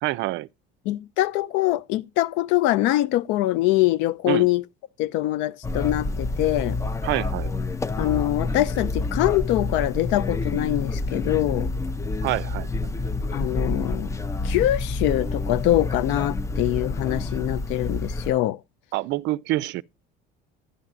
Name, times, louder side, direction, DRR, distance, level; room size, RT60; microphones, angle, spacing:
voice 1, 0.0-0.5 4.3-4.5 7.0-7.5 12.2-12.9 18.9-19.8, right 17 dB, 65° right, 0.4 m, -27 dB
voice 2, 0.9-4.6 5.0-6.8 8.0-11.7 13.3-14.2 14.4-18.6, left 15 dB, 70° left, 0.5 m, -23 dB
sound 1, 5.6-18.3, left 3 dB, 15° left, 0.4 m, -28 dB
11.5 x 10.5 x 2.4 m
supercardioid pair, 90°, 20 cm